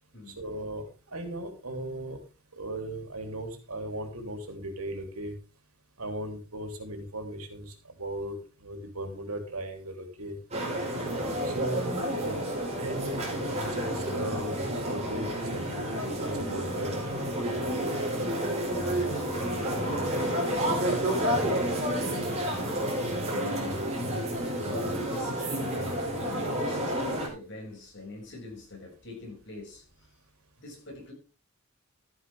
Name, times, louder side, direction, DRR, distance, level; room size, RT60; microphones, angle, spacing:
voice 1, 0.3-0.8 1.1-2.2 2.6-5.3 6.0-10.3 11.4-11.8 12.1-12.4 12.8-17.0, right 1 dB, 85° right, 3.4 m, -37 dB
sound 1, 10.5-27.3, right 1 dB, 30° right, 5.7 m, -30 dB
voice 2, 18.7-23.9 24.6-25.8 26.2-29.9 30.6-31.1, left 2 dB, 55° left, 7.0 m, -43 dB
13.5 x 10.5 x 3.6 m
head